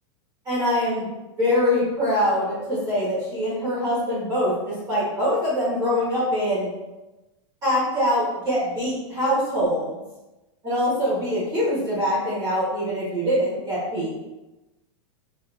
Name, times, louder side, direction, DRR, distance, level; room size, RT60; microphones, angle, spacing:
voice 1, 0.4-1.0 1.4-6.7 7.6-10.0 10.6-14.2, equal, 20° right, -8 dB, 0.9 m, -23 dB
3.8 x 2.5 x 2.4 m, 1.0 s
supercardioid pair, 155°, 15 cm